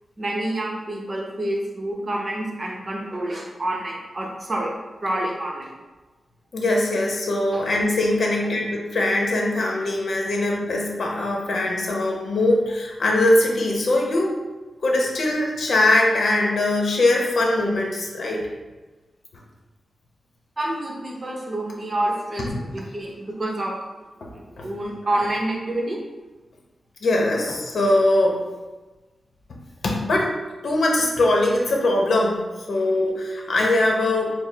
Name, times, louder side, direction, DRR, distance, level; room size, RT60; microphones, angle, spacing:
voice 1, 0.2-4.7 5.0-5.7 7.5-7.6 20.6-23.7 24.3-26.0, right 1 dB, 35° right, -1 dB, 0.8 m, -28 dB
voice 2, 6.5-14.3 14.8-18.5 24.6-24.7 27.0-28.4 29.8-30.3 30.6-32.4 32.7-34.3, left 2 dB, 65° left, -1 dB, 0.8 m, -21 dB
4.6 x 2.0 x 3.9 m, 1.2 s
wide cardioid pair, 115°, 0 cm